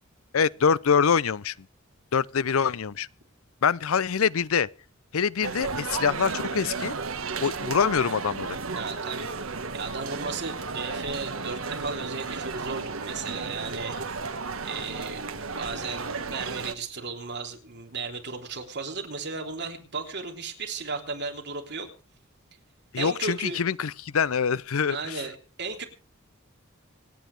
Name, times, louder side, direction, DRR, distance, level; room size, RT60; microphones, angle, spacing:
voice 1, 0.3-1.5 2.1-3.1 3.6-4.7 5.1-7.0 7.4-8.6 22.9-25.2, left 6 dB, 85° left, 0.6 m, -25 dB
sound 1, 5.4-16.7, right 4 dB, 80° right, 1.4 m, -33 dB
voice 2, 8.7-9.5 9.7-14.0 14.6-21.9 23.0-23.6 24.9-25.8, right 4 dB, 55° right, 3.4 m, -35 dB
26.0 x 9.2 x 3.3 m
head